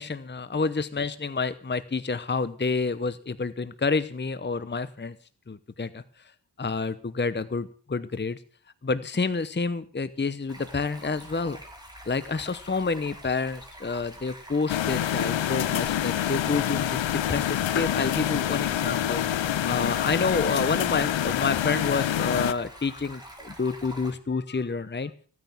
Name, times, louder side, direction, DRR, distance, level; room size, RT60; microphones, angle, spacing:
voice 1, 0.0-5.2 5.5-6.0 6.6-8.4 8.8-11.6 12.1-25.1, left 4 dB, 25° left, 14 dB, 0.9 m, -29 dB
Stream, 10.5-24.1, right 1 dB, 10° right, 5.2 m, -46 dB
sound 1, 14.7-22.5, left 11 dB, 90° left, 0.6 m, -27 dB
16.0 x 9.4 x 7.3 m, 0.43 s
cardioid pair, 50°, 44 cm